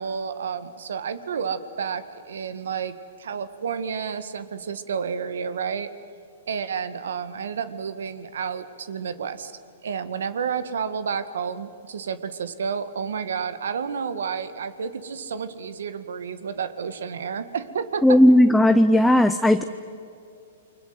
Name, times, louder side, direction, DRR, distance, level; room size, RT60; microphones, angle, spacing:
voice 1, 0.0-5.9 6.5-9.5 9.8-18.2, right 6 dB, 80° right, 12 dB, 2.0 m, -30 dB
voice 2, 18.0-19.6, left 1 dB, 5° left, 8 dB, 0.7 m, -16 dB
29.5 x 24.0 x 7.8 m, 2.5 s
hypercardioid pair, 145°, 0 cm